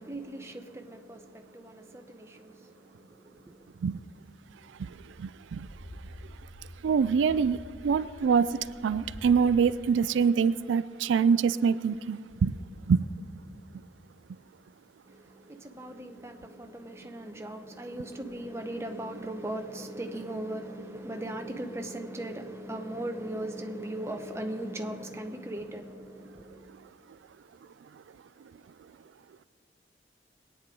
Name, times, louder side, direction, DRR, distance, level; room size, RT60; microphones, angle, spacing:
voice 1, 0.0-3.7 15.1-26.7, right 1 dB, 15° right, 0.7 m, -38 dB
sound 1, 4.7-9.4, equal, 75° left, 2.9 m, -47 dB
voice 2, 4.8-5.7 6.8-12.6 12.9-13.0, right 6 dB, 90° right, 0.3 m, -25 dB
22.0 x 9.3 x 3.8 m
head